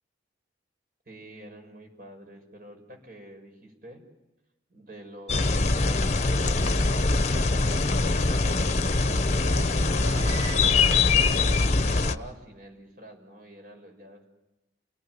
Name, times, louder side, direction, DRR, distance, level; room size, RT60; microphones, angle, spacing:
voice 1, 1.1-4.0 4.7-11.2 11.7-14.3, right 1 dB, 50° right, 4 dB, 6.4 m, -47 dB
sound 1, 5.3-12.2, left 3 dB, 40° left, 0.9 m, -23 dB
sound 2, 6.7-8.6 9.3-11.4 11.7-11.8, right 2 dB, 90° right, 1.6 m, -44 dB
29.5 x 18.5 x 9.7 m, 0.99 s
head